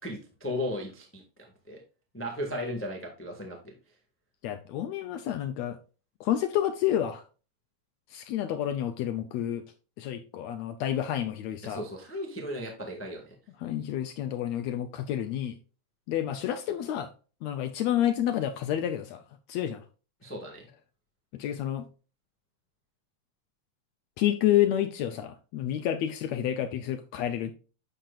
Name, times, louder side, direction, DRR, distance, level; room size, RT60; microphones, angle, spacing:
voice 1, 0.0-1.8 2.1-3.7 11.6-13.3 20.2-20.6, left 1 dB, 15° left, 0.4 m, -36 dB
voice 2, 4.4-5.8 6.2-7.2 8.1-9.6 10.0-11.8 13.6-15.5 16.1-17.1 17.4-19.2 19.5-19.8 21.3-21.9 24.2-27.5, left 11 dB, 75° left, 1.6 m, -29 dB
8.9 x 6.8 x 2.4 m
omnidirectional pair, 3.6 m